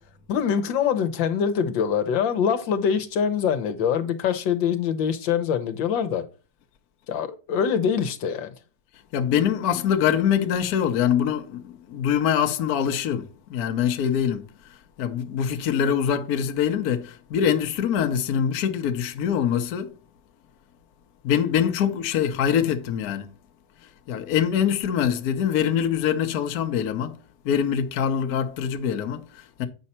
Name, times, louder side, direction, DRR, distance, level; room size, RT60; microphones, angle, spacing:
voice 1, 0.3-6.2 7.1-8.5, left 7 dB, 80° left, 1.6 m, -24 dB
voice 2, 9.1-14.4 15.0-19.9 21.2-23.3 24.1-27.2 27.4-29.7, left 8 dB, 60° left, 1.2 m, -24 dB
8.2 x 5.4 x 4.2 m
omnidirectional pair, 2.1 m